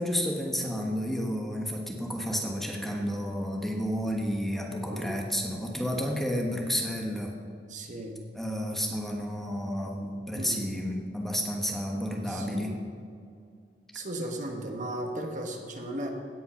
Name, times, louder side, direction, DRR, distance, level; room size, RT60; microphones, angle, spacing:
voice 1, 0.0-7.3 8.3-12.7, equal, ahead, -1 dB, 1.1 m, -31 dB
voice 2, 4.9-5.3 7.7-8.2 10.3-10.7 12.3-12.7 13.9-16.1, right 1 dB, 45° right, 2 dB, 1.3 m, -36 dB
16.5 x 5.5 x 5.7 m, 2.4 s
head